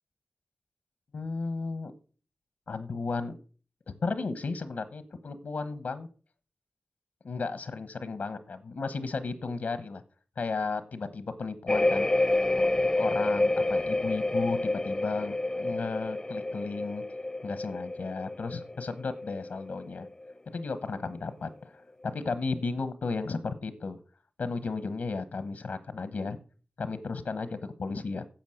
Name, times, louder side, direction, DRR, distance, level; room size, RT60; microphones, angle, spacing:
voice 1, 1.1-1.9 2.7-3.4 4.0-6.1 7.2-10.0 10.4-12.1 12.6-12.7 13.0-17.0 17.4-20.1 20.5-21.7 22.1-24.0 24.4-26.4 26.8-28.3, left 4 dB, 90° left, 12 dB, 1.1 m, -34 dB
sound 1, 11.7-20.3 20.6-21.1, left 2 dB, 25° left, 0.4 m, -29 dB
10.5 x 7.0 x 6.4 m, 0.39 s
cardioid pair, 50°, 3 cm